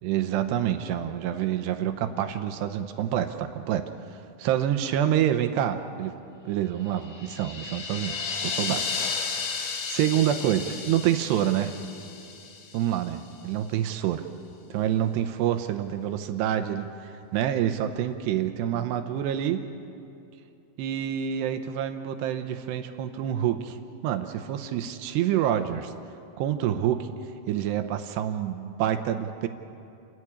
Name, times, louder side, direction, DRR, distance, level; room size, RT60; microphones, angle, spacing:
voice 1, 0.0-6.1 6.5-8.8 9.9-11.8 12.7-14.2 14.7-19.6 20.8-23.8 24.0-25.9 26.4-27.1 27.5-29.5, right 10 dB, 75° right, 8 dB, 2.6 m, -27 dB
sound 1, 7.0-13.2, left 5 dB, 65° left, 3.7 m, -33 dB
29.0 x 14.0 x 9.9 m, 2.7 s
omnidirectional pair, 5.6 m